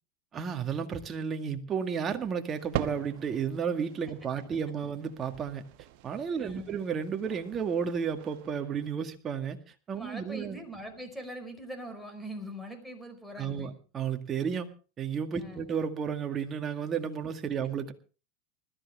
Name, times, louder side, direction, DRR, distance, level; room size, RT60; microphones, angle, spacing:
voice 1, 0.3-5.6 6.0-9.6 9.9-10.6 13.4-14.7 15.0-17.9, right 7 dB, 30° right, 5 dB, 2.1 m, -32 dB
sound 1, 2.5-8.9, right 13 dB, 65° right, 1.2 m, -42 dB
voice 2, 6.4-6.8 10.0-13.8 15.4-15.7, equal, ahead, 7 dB, 5.1 m, -42 dB
20.5 x 14.0 x 3.6 m, 0.35 s
hypercardioid pair, 110°, 0 cm